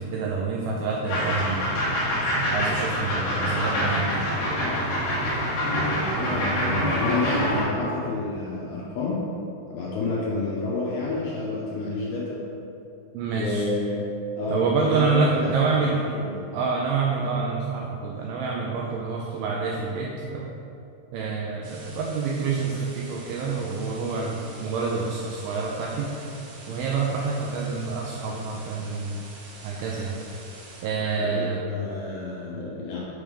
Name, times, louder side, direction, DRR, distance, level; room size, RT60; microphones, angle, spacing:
voice 1, 0.0-1.7 2.5-4.3 13.1-13.7 14.5-16.0 16.5-20.5 21.1-26.2 26.7-29.2 29.6-30.2 30.8-31.6, right 4 dB, 90° right, -2 dB, 2.1 m, -27 dB
sound 1, 1.1-7.6, equal, 55° left, 2.1 m, -25 dB
voice 2, 6.3-9.2 9.7-12.4 13.3-14.0 14.4-16.4 31.2-33.0, left 3 dB, 80° left, -6 dB, 2.7 m, -30 dB
sound 2, 21.6-30.8, right 2 dB, 70° right, 2.4 m, -46 dB
6.8 x 3.4 x 5.0 m, 2.7 s
omnidirectional pair, 4.9 m